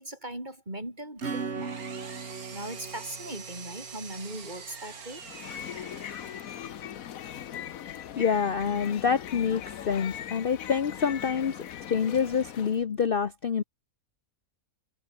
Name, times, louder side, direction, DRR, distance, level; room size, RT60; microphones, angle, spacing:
voice 1, 0.0-1.8 2.5-5.2, right 1 dB, 30° right, 7.2 m, -39 dB
Acoustic guitar / Strum, 1.2-5.5, right 5 dB, 50° right, 2.0 m, -39 dB
Engine, 1.2-6.9, right 5 dB, 85° right, 2.6 m, -45 dB
sound 1, 5.2-12.8, left 10 dB, 70° left, 1.3 m, -40 dB
voice 2, 8.2-11.5 11.9-13.6, left 6 dB, 45° left, 1.0 m, -27 dB
omnidirectional pair, 1.5 m